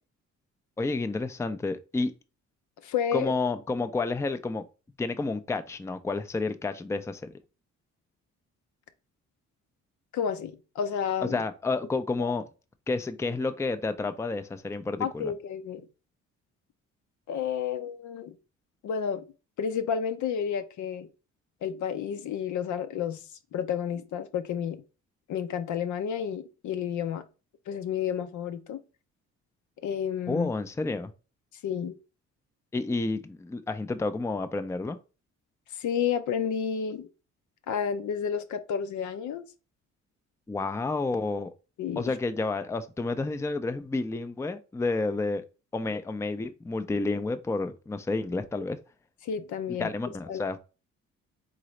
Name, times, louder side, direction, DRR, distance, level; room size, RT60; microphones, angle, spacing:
voice 1, 0.8-2.1 3.1-4.6 5.0-7.3 11.3-12.4 12.9-15.3 30.3-31.1 32.7-35.0 40.5-41.5 42.0-45.4 45.7-48.8 49.8-50.6, left 3 dB, 10° left, 0.4 m, -30 dB
voice 2, 2.8-3.3 10.1-11.4 15.0-15.9 17.3-18.3 18.8-19.3 19.6-21.1 21.6-23.2 23.5-24.8 25.3-27.2 27.7-28.8 29.8-30.5 31.6-32.0 35.7-37.1 37.7-39.5 41.8-42.2 49.2-49.9 50.3-50.4, left 8 dB, 70° left, 0.7 m, -31 dB
4.0 x 3.8 x 3.1 m
cardioid pair, 90°, 30 cm